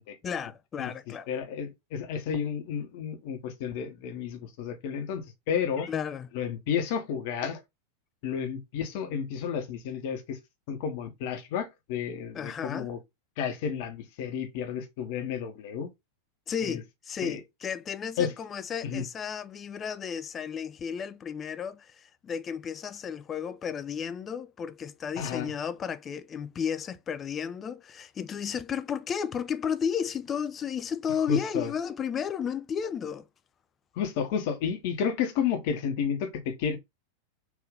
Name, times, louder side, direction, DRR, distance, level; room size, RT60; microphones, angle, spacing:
voice 1, 0.2-1.3 5.9-6.3 12.3-12.9 16.5-33.2, left 7 dB, 25° left, 0.3 m, -33 dB
voice 2, 1.3-5.9 6.3-7.6 8.2-10.4 10.7-13.0 13.4-15.9 16.6-16.8 17.2-17.4 18.2-18.3 18.8-19.0 25.2-25.5 31.3-31.7 34.0-36.8, left 7 dB, 50° left, 0.9 m, -31 dB
3.6 x 2.7 x 3.4 m
figure-of-eight pair, 90°, 0 cm